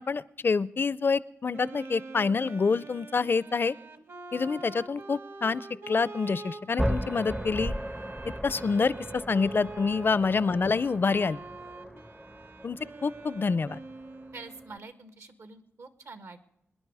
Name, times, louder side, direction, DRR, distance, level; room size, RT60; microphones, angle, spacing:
voice 1, 0.0-3.7 4.3-7.7 8.4-11.4 12.6-12.8 13.0-13.8, left 4 dB, 45° left, 20 dB, 0.5 m, -27 dB
Wind instrument woodwind instrument, 1.5-14.9, right 3 dB, 55° right, 1.5 m, -45 dB
sound 1, 6.8-14.8, equal, 5° right, 0.5 m, -37 dB
voice 2, 14.3-16.5, right 3 dB, 75° right, 10 dB, 1.7 m, -46 dB
26.0 x 10.5 x 4.8 m, 0.81 s
cardioid pair, 85°, 5 cm